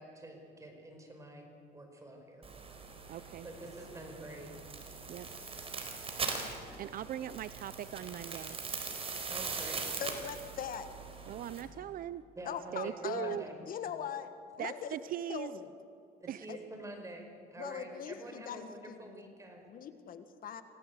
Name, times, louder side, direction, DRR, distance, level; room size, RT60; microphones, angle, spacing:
voice 1, 0.0-1.5 1.7-2.5 3.4-4.5 9.3-9.9 12.4-13.6 16.2-19.7, right 1 dB, 20° right, 3 dB, 5.1 m, -47 dB
sound 1, 2.4-11.6, right 4 dB, 35° right, 4.2 m, -41 dB
voice 2, 3.1-3.5 5.1-5.3 6.8-8.6 11.3-12.2 12.7-13.5 14.6-15.5 16.3-16.5, right 11 dB, 55° right, 15 dB, 0.7 m, -40 dB
voice 3, 10.0-10.9 12.4-13.4 13.7-14.3 14.6-15.0 15.3-15.8 16.5-16.6 17.6-19.2 19.7-20.6, left 8 dB, 55° left, 10 dB, 1.5 m, -41 dB
26.5 x 17.5 x 8.3 m, 2.5 s
cardioid pair, 110°, 17 cm